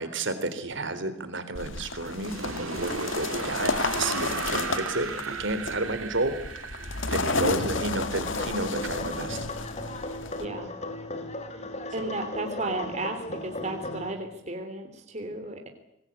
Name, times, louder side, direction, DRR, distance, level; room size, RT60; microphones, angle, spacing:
voice 1, 0.0-6.4 7.1-9.4, right 2 dB, 60° right, 11 dB, 3.8 m, -31 dB
sound 1, 1.5-10.4, left 3 dB, 65° left, 2.0 m, -32 dB
sound 2, 2.1-9.0, right 4 dB, 85° right, 3.3 m, -36 dB
sound 3, 7.3-14.1, left 1 dB, 30° left, 3.2 m, -36 dB
voice 2, 10.3-10.7 11.6-11.7 11.9-15.7, right 2 dB, 35° right, 4 dB, 3.2 m, -34 dB
26.0 x 20.0 x 8.7 m, 0.81 s
head